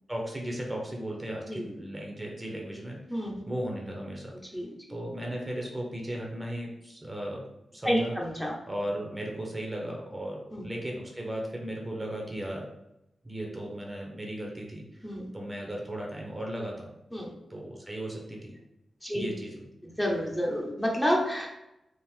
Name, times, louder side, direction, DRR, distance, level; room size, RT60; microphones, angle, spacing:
voice 1, 0.1-3.2 3.5-4.3 4.9-7.4 7.7-8.1 8.7-12.7 13.2-16.9 17.5-18.5 19.1-19.6, right 1 dB, 15° right, -1 dB, 0.9 m, -36 dB
voice 2, 1.5-1.8 3.1-3.4 4.5-4.7 7.8-8.5 10.5-10.7 15.0-15.3 17.1-17.3 19.0-19.3 19.8-21.5, equal, 10° left, -2 dB, 0.9 m, -29 dB
3.7 x 2.4 x 4.4 m, 0.87 s
cardioid pair, 75°, 0 cm